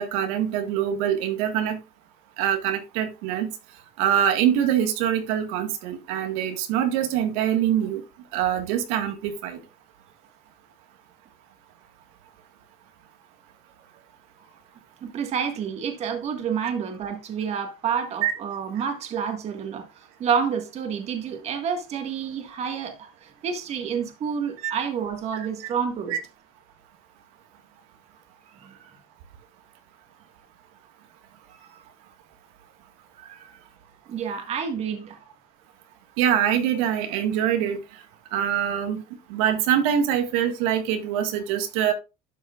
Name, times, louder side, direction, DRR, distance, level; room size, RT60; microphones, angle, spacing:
voice 1, 0.0-1.8 2.4-3.5 4.0-8.0 8.3-9.6 18.2-18.3 24.6-24.7 25.6-25.7 26.1-26.2 36.2-37.8 38.3-39.0 39.3-41.9, right 10 dB, 85° right, 1.7 m, -24 dB
voice 2, 15.0-26.2 28.6-28.8 31.7-31.8 33.2-33.6 34.1-35.2, right 7 dB, 35° right, 1.7 m, -29 dB
12.0 x 6.4 x 2.4 m
cardioid pair, 150°, 18 cm